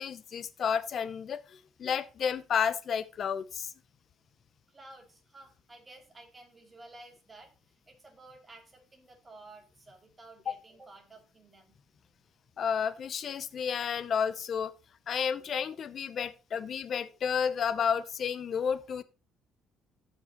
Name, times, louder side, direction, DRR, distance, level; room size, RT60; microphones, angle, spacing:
voice 1, 0.0-3.7 10.5-10.6 12.6-14.7 15.1-19.0, left 7 dB, 50° left, 0.7 m, -31 dB
voice 2, 4.7-7.5 7.9-11.7, right 2 dB, 20° right, 2.3 m, -53 dB
14.5 x 5.4 x 3.0 m
cardioid pair, 125°, 0 cm